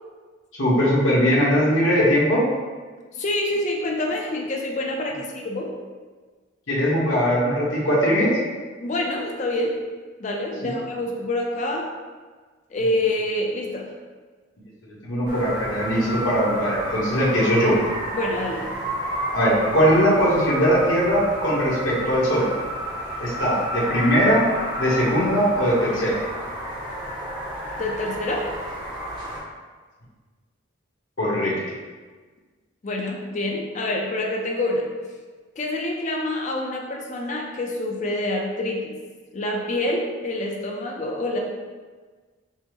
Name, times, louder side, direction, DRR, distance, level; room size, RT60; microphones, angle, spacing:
voice 1, 0.6-2.4 6.7-8.3 15.0-17.8 19.3-22.5 23.2-24.4 24.8-26.2 31.2-31.5, equal, 75° left, -6 dB, 1.1 m, -20 dB
voice 2, 3.1-5.7 8.8-9.8 10.2-11.9 12.7-13.9 18.1-18.9 27.8-28.5 32.8-34.8 35.6-39.0 39.3-41.4, left 1 dB, 35° left, 0 dB, 0.4 m, -26 dB
sound 1, 15.3-29.4, equal, 20° right, 0.7 m, -31 dB
5.3 x 2.1 x 3.0 m, 1.4 s
head